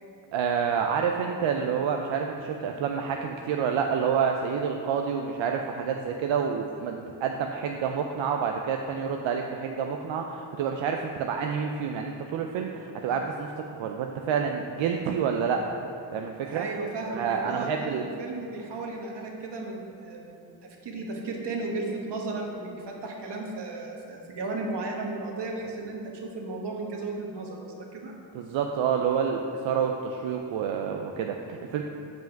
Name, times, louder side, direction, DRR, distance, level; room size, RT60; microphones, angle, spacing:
voice 1, 0.3-15.8 16.1-16.7 17.1-18.0 28.3-31.8, right 7 dB, 85° right, 3 dB, 0.5 m, -28 dB
voice 2, 16.4-20.5 20.8-28.2, right 3 dB, 65° right, 1 dB, 1.3 m, -35 dB
5.6 x 5.2 x 5.7 m, 2.8 s
cardioid pair, 60°, 45 cm